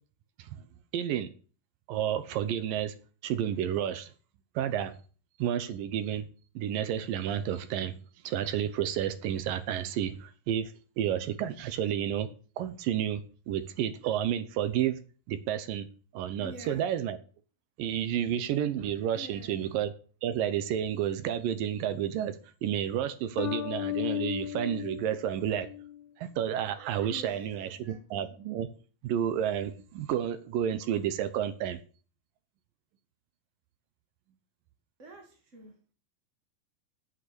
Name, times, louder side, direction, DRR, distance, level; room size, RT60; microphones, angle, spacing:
voice 1, 0.9-1.3 1.9-2.9 3.2-4.1 4.6-4.9 5.4-6.3 6.6-8.0 8.2-12.3 12.6-15.0 15.3-15.9 16.1-17.2 17.8-19.9 20.2-25.7 26.2-28.7 29.0-31.8, right 10 dB, 75° right, 2.2 m, -31 dB
voice 2, 16.4-16.9 19.1-19.6 27.1-28.3 35.0-35.9, equal, 40° right, 1.1 m, -48 dB
sound 1, 23.4-26.0, left 13 dB, 70° left, 3.3 m, -35 dB
8.7 x 7.9 x 8.2 m
omnidirectional pair, 4.8 m